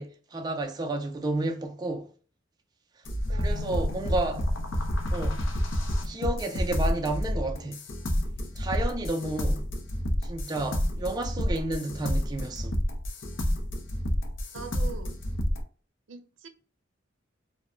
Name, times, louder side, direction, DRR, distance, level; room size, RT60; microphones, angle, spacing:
voice 1, 0.0-2.1 3.3-4.5 5.1-5.4 6.0-7.8 8.6-9.6 10.2-12.7, right 2 dB, 20° right, 0.3 m, -31 dB
sound 1, 3.0-15.6, equal, 80° left, 0.6 m, -29 dB
voice 2, 3.3-4.3 14.5-15.2 16.1-16.5, right 4 dB, 85° right, 0.5 m, -43 dB
2.4 x 2.1 x 2.9 m
head